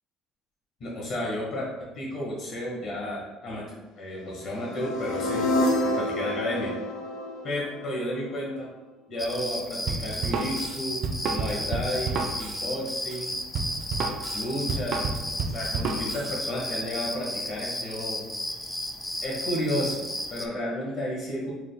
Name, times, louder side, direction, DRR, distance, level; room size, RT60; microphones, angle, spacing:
voice 1, 0.8-1.7 1.9-3.6 4.0-5.5 5.8-6.7 7.4-8.7 9.1-11.0 11.3-13.4 14.3-15.1 15.5-18.2 19.2-21.5, left 1 dB, 55° left, -4 dB, 1.2 m, -32 dB
sound 1, 4.5-8.5, left 1 dB, 80° left, 0.6 m, -28 dB
sound 2, 9.2-20.5, left 1 dB, 10° left, 0.4 m, -34 dB
Drum kit, 9.9-16.3, right 4 dB, 55° right, 0.5 m, -30 dB
4.6 x 2.1 x 3.8 m, 1.1 s
cardioid pair, 125°, 0 cm